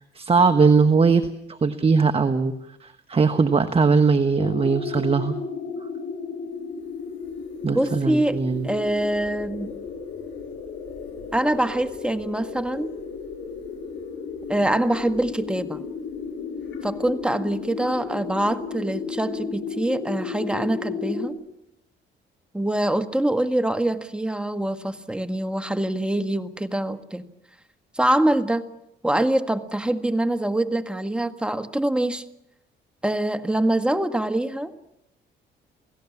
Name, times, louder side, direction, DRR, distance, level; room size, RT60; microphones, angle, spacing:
voice 1, 0.1-2.5 2.8-5.3 7.6-8.7, right 4 dB, 30° right, 9 dB, 1.3 m, -20 dB
sound 1, 4.4-21.3, left 5 dB, 70° left, 7.6 m, -34 dB
voice 2, 7.7-9.7 11.3-12.9 14.5-15.8 16.8-21.4 22.5-27.2 27.9-28.6 29.0-32.2 33.0-34.7, right 1 dB, 5° right, 8 dB, 1.6 m, -24 dB
29.0 x 17.0 x 7.3 m, 0.81 s
cardioid pair, 90°, 20 cm